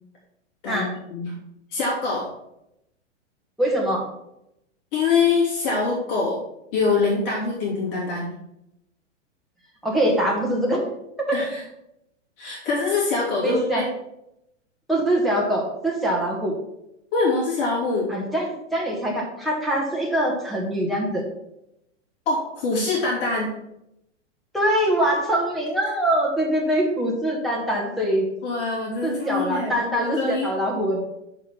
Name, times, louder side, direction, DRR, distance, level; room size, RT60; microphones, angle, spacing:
voice 1, 0.6-1.3 1.7-2.3 4.9-6.4 6.7-8.3 11.3-11.6 12.4-13.9 17.1-18.1 22.3-23.5 28.4-30.5, left 4 dB, 45° left, -5 dB, 2.9 m, -24 dB
voice 2, 3.6-4.1 9.8-10.8 11.3-11.4 13.4-13.8 14.9-16.6 18.1-21.2 24.5-28.3 29.0-31.0, right 1 dB, ahead, -4 dB, 1.5 m, -23 dB
6.5 x 4.9 x 5.8 m, 0.82 s
hypercardioid pair, 145°, 37 cm